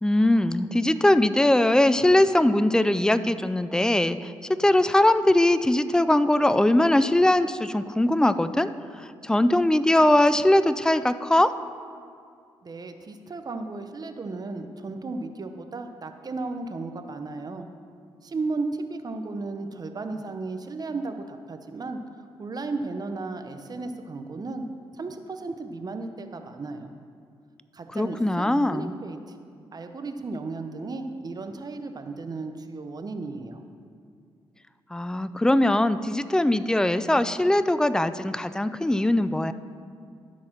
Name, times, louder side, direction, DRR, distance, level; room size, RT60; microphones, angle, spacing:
voice 1, 0.0-8.7 9.0-11.5 27.9-28.9 34.9-39.5, left 1 dB, 5° left, 14 dB, 0.4 m, -21 dB
voice 2, 12.6-17.7 18.2-22.0 22.4-24.6 24.9-26.9 27.7-29.2 29.7-33.6, right 3 dB, 40° right, 7 dB, 0.8 m, -34 dB
12.5 x 4.2 x 6.0 m, 2.3 s
supercardioid pair, 60°, 10 cm